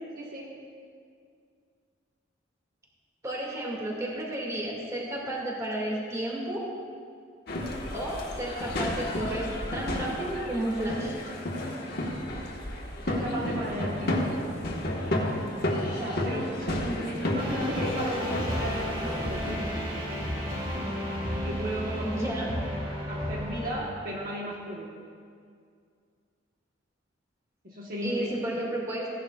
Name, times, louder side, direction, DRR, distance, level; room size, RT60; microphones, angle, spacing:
voice 1, 0.2-0.5 13.0-14.3 15.9-19.7 21.3-22.1 23.1-24.9 27.6-28.3, equal, 50° right, -4 dB, 1.2 m, -35 dB
voice 2, 3.2-6.7 7.9-11.2 22.0-22.5 28.0-29.1, right 1 dB, 15° right, -3 dB, 2.1 m, -32 dB
sound 1, 7.5-19.5, left 1 dB, 55° left, 1.5 m, -32 dB
sound 2, 17.4-23.8, equal, 30° right, 2.7 m, -32 dB
16.0 x 11.0 x 2.4 m, 2.2 s
head